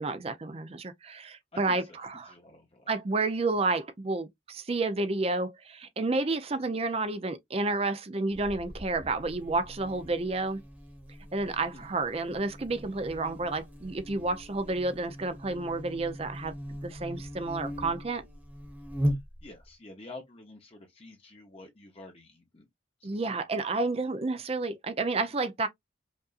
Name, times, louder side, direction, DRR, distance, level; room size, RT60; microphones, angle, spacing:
voice 1, 0.0-2.3 2.9-10.6 11.3-16.5 16.8-18.2 23.0-25.7, right 3 dB, 30° right, 0.5 m, -30 dB
voice 2, 1.5-2.0 2.2-2.9 11.7-12.0 19.1-22.7 23.0-23.4, left 2 dB, 30° left, 0.8 m, -49 dB
Buzz, 8.3-19.7, equal, 10° right, 1.1 m, -39 dB
5.2 x 2.5 x 2.4 m
head